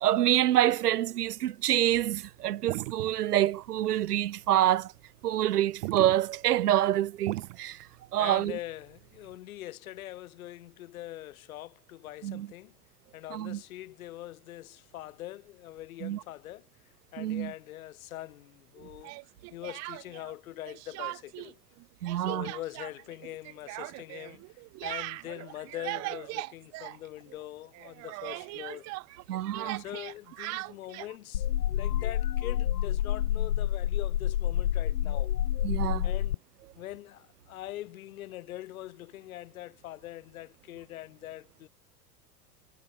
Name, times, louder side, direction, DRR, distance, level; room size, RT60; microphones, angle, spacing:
voice 1, 0.0-4.9 5.2-7.9 8.1-8.6 12.2-12.5 13.3-13.6 16.0-16.2 17.2-17.5 22.0-22.5 29.3-29.8 35.6-36.1, right 12 dB, 80° right, 0.5 m, -27 dB
sound 1, 1.9-9.3, right 22 dB, 55° right, 1.7 m, -40 dB
voice 2, 8.2-12.8 13.1-16.7 17.1-19.1 19.5-21.6 22.2-28.9 29.6-35.3 36.0-36.4 36.8-41.7, left 15 dB, 65° left, 1.8 m, -43 dB
Speech, 19.0-20.3 20.6-21.5 21.8-27.5 27.7-31.2, right 25 dB, 35° right, 0.7 m, -40 dB
sound 2, 31.3-36.3, left 12 dB, 85° left, 0.6 m, -28 dB
figure-of-eight pair, 80°, 46 cm